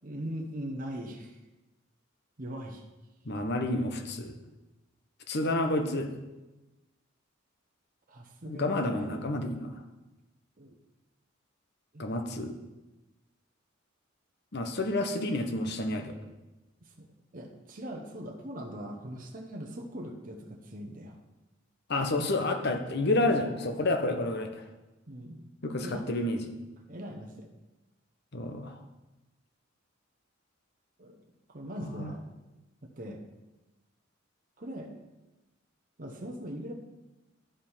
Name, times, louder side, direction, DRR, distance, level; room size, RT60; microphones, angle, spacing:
voice 1, 0.0-1.4 2.4-2.8 8.1-9.1 10.6-10.7 11.9-12.1 16.8-17.1 17.3-21.2 25.1-25.4 25.8-26.0 26.9-27.5 31.0-31.2 31.5-32.2 32.8-33.2 34.6-34.9 36.0-36.7, equal, 40° right, 2 dB, 0.9 m, -40 dB
voice 2, 3.2-4.3 5.3-6.1 8.4-9.8 12.0-12.6 14.5-16.1 21.9-24.5 25.6-26.4 28.3-28.8 31.8-32.1, left 2 dB, 55° left, 5 dB, 1.0 m, -29 dB
11.5 x 5.0 x 5.6 m, 1.1 s
head